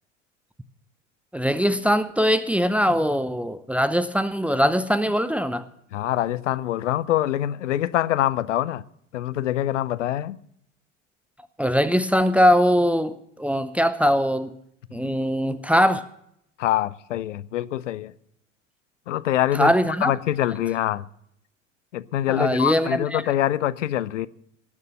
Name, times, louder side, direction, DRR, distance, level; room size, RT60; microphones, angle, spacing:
voice 1, 1.3-5.7 11.6-14.5 14.9-16.0 19.5-20.1 22.3-23.2, equal, 5° right, 0.6 m, -21 dB
voice 2, 5.9-8.8 9.1-10.4 14.9-15.1 16.6-18.1 19.1-19.7 20.0-21.1 21.9-24.3, left 13 dB, 70° left, 0.7 m, -24 dB
19.0 x 6.7 x 7.4 m
figure-of-eight pair, 80°, 38 cm